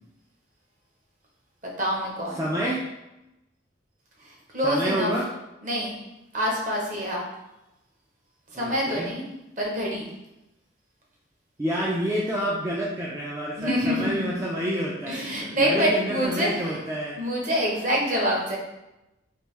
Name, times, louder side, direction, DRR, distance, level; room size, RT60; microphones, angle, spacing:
voice 1, 1.6-2.5 4.5-5.1 5.6-6.0 6.3-7.2 8.6-9.2 9.6-10.1 13.6-14.4 15.1-16.8 17.2-18.6, equal, 40° right, -2 dB, 0.8 m, -26 dB
voice 2, 2.4-2.8 4.6-5.3 8.6-9.1 11.6-15.3 15.6-17.2, equal, 15° right, -5 dB, 0.3 m, -28 dB
3.3 x 2.5 x 3.2 m, 0.93 s
head